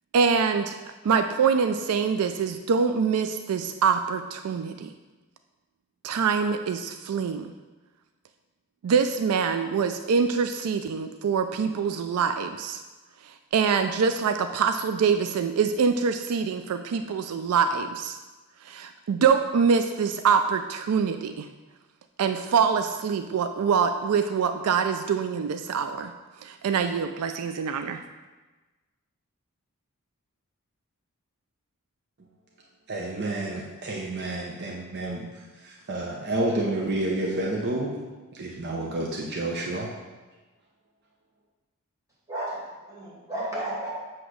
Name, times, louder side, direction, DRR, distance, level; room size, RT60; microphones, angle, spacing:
voice 1, 0.1-0.8 1.0-4.9 6.0-7.5 8.8-12.8 13.2-18.2 18.6-21.5 22.2-26.1 26.4-28.0, right 6 dB, 80° right, 8 dB, 0.4 m, -25 dB
voice 2, 32.9-37.9 38.3-39.9, right 2 dB, 50° right, -2 dB, 0.7 m, -30 dB
voice 3, 42.3-43.9, right 1 dB, 15° right, -7 dB, 2.4 m, -33 dB
8.0 x 3.0 x 6.2 m, 1.2 s
head